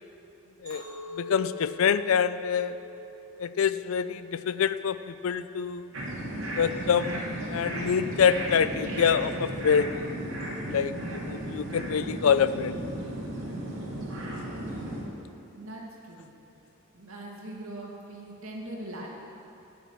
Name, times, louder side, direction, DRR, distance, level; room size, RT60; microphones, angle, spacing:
Chink clink, 0.7-5.0 5.5-5.9, left 2 dB, 45° right, 3.7 m, -44 dB
voice 1, 1.2-2.7 3.4-5.9 6.5-9.9 10.7-12.7, left 7 dB, 75° left, 14 dB, 0.4 m, -26 dB
sound 1, 5.9-15.0, right 1 dB, 65° right, 2.9 m, -35 dB
voice 2, 14.6-14.9 15.6-16.3 16.9-19.1, right 1 dB, 85° right, -2 dB, 2.4 m, -41 dB
17.5 x 7.0 x 6.1 m, 2.7 s
head